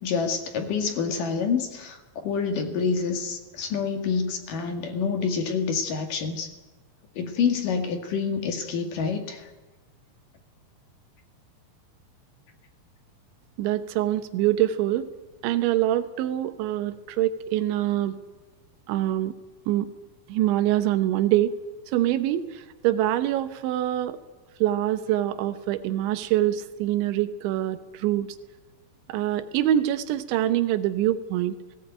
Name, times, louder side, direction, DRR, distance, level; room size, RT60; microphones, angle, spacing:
voice 1, 0.0-6.5 7.2-9.5, left 5 dB, 55° left, 6 dB, 3.0 m, -27 dB
voice 2, 13.6-15.1 15.4-18.2 18.9-19.3 19.7-19.9 20.3-21.6 21.9-24.2 24.6-28.3 29.1-31.6, right 13 dB, 90° right, 10 dB, 3.4 m, -25 dB
18.0 x 18.0 x 9.1 m, 1.2 s
omnidirectional pair, 5.2 m